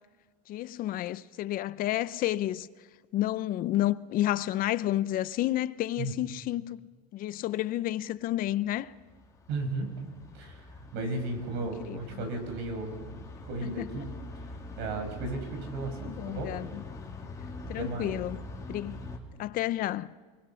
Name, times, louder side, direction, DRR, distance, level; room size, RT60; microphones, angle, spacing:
voice 1, 0.5-2.7 3.1-6.8 7.1-8.9 11.8-12.2 13.6-13.9 16.0-16.8 17.7-18.4 18.7-19.0 19.4-20.1, left 14 dB, 45° left, 0.7 m, -30 dB
sound 1, 8.8-19.2, left 2 dB, 15° left, 3.5 m, -43 dB
voice 2, 9.5-10.0 10.3-10.6 10.9-14.2 14.8-16.5 17.8-18.2, right 2 dB, 65° right, 5.9 m, -35 dB
29.5 x 20.5 x 5.8 m
supercardioid pair, 135°, 20 cm